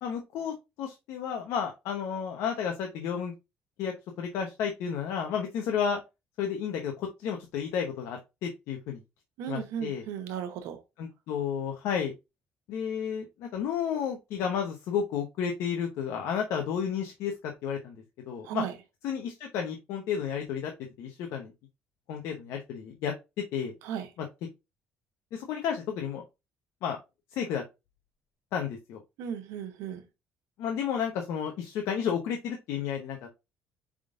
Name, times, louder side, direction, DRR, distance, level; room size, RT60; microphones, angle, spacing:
voice 1, 0.0-3.3 3.8-6.0 6.4-9.0 9.5-10.0 11.0-12.1 12.7-18.0 18.3-18.7 19.0-20.7 21.0-21.5 22.1-23.1 23.5-23.7 24.2-24.3 25.3-26.2 26.8-27.0 27.3-27.6 28.5-29.0 30.6-33.3, left 7 dB, 80° left, 0.8 m, -32 dB
voice 2, 9.4-10.8 18.5-18.7 23.8-24.1 29.2-30.0, right 8 dB, 90° right, 0.8 m, -35 dB
4.9 x 3.6 x 2.5 m
cardioid pair, 90°, 5 cm